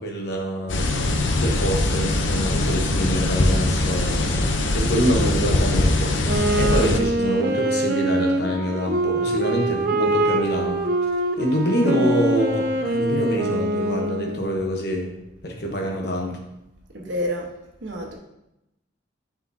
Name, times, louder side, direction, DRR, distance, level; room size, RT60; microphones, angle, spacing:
voice 1, 0.0-10.8 11.4-15.1 15.4-16.4, equal, 60° left, 1 dB, 1.0 m, -26 dB
sound 1, 0.7-7.0, left 2 dB, 85° left, 0.7 m, -22 dB
Wind instrument woodwind instrument, 6.2-14.5, right 2 dB, 55° right, 0.6 m, -24 dB
voice 2, 16.9-17.5 17.8-18.1, equal, 75° right, 0 dB, 1.2 m, -28 dB
9.4 x 4.9 x 2.8 m, 0.88 s
head